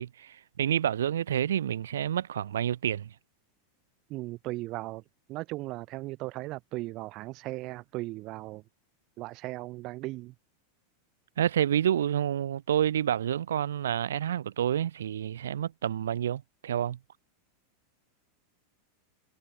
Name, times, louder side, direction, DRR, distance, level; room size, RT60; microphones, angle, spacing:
voice 1, 0.0-3.1 11.4-17.0, right 10 dB, 75° right, 0.4 m, -28 dB
voice 2, 4.1-8.6 9.2-10.3, right 19 dB, 45° right, 3.6 m, -37 dB
figure-of-eight pair, 90°, 0 cm